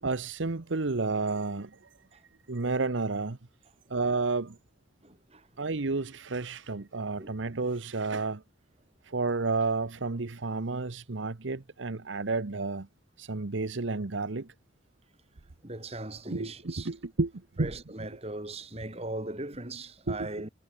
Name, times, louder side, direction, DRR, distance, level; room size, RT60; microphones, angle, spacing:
voice 1, 0.0-1.7 2.5-3.4 3.9-4.6 5.6-8.4 9.1-12.9 13.2-14.5 16.3-17.3 17.6-17.7 20.1-20.3, right 3 dB, 75° right, 1.0 m, -31 dB
voice 2, 5.0-5.4 7.2-7.3 15.6-16.9 17.6-20.5, right 2 dB, 35° right, 3.2 m, -39 dB
head